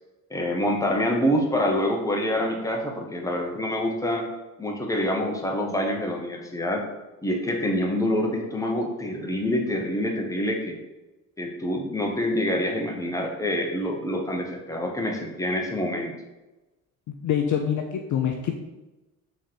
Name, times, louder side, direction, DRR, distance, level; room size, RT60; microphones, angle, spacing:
voice 1, 0.3-4.3 4.6-6.8 7.2-10.8 11.4-16.1, left 1 dB, 10° left, 1 dB, 1.0 m, -26 dB
voice 2, 17.1-18.5, left 8 dB, 45° left, 4 dB, 0.5 m, -25 dB
3.7 x 3.2 x 4.3 m, 1.1 s
hypercardioid pair, 55°, 42 cm